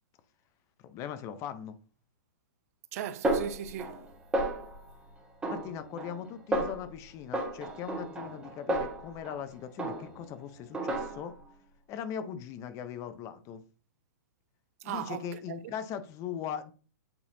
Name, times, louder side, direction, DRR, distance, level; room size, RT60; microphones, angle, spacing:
voice 1, 0.8-1.8 5.5-11.3 11.9-13.6 14.8-16.7, left 8 dB, 30° left, 0.7 m, -39 dB
voice 2, 2.9-4.1 14.8-15.7, right 10 dB, 45° right, 0.5 m, -38 dB
Snare drum, 3.2-4.1 4.3-4.9 5.4-6.2 6.5-6.9 7.3-9.4 9.8-10.3 10.7-11.4, right 1 dB, 10° right, 1.4 m, -33 dB
8.8 x 4.0 x 2.7 m
hypercardioid pair, 140°, 11 cm